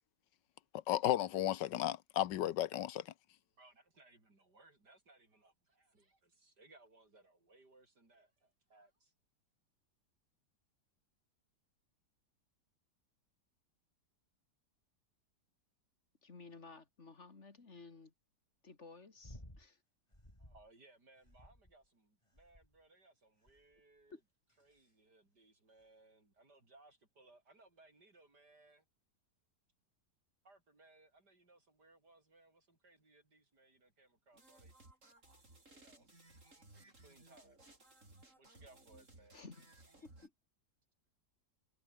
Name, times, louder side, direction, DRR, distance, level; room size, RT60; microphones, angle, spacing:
voice 1, 0.9-3.0, left 13 dB, 80° left, 1.5 m, -34 dB
voice 2, 3.6-9.1 20.4-24.2 24.6-28.9 30.4-34.7 35.7-36.1 36.7-37.6 38.4-39.4, right 2 dB, 65° right, 6.6 m, -65 dB
voice 3, 16.2-18.1 18.6-19.8 24.1-24.2 39.3-39.7 40.0-40.3, left 4 dB, 40° left, 2.5 m, -55 dB
sound 1, 19.2-19.7 20.1-20.7 21.2-21.9 22.3-22.8 23.5-23.8 24.5-24.9 25.8-25.9, left 1 dB, 15° left, 7.5 m, -57 dB
sound 2, 34.3-40.3, right 2 dB, 45° right, 5.7 m, -61 dB
omnidirectional pair, 1.9 m